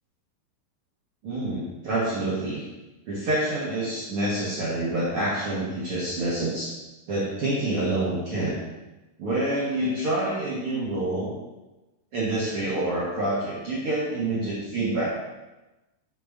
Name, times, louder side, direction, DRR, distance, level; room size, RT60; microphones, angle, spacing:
voice 1, 1.2-2.7 3.1-6.7 7.1-8.5 9.2-11.3 12.1-15.0, right 1 dB, 70° right, -7 dB, 1.3 m, -27 dB
7.0 x 6.8 x 3.6 m, 1.1 s
omnidirectional pair, 4.6 m